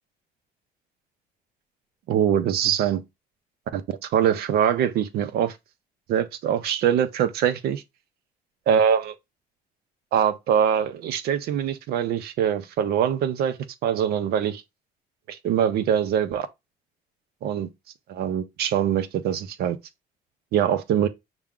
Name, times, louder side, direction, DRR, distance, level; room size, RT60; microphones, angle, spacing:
voice 1, 2.1-3.0 3.7-5.6 6.1-7.8 8.7-9.1 10.1-14.6 15.3-16.5 17.4-17.7 18.1-19.8 20.5-21.1, right 9 dB, 70° right, 0.5 m, -23 dB
5.7 x 2.1 x 3.6 m
cardioid pair, 110°, 17 cm